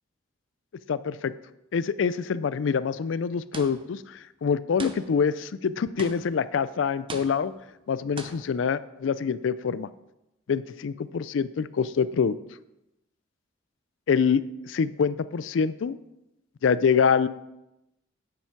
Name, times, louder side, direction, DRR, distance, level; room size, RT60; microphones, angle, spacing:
voice 1, 0.9-1.3 1.7-7.5 7.9-9.9 10.5-12.4 14.1-16.0 16.6-17.3, left 6 dB, 75° left, 16 dB, 0.4 m, -25 dB
sound 1, 3.5-4.0 4.8-5.3 6.0-6.5 7.1-7.7 8.2-8.6, right 3 dB, 30° right, 0.7 m, -41 dB
9.2 x 7.0 x 4.6 m, 0.91 s
head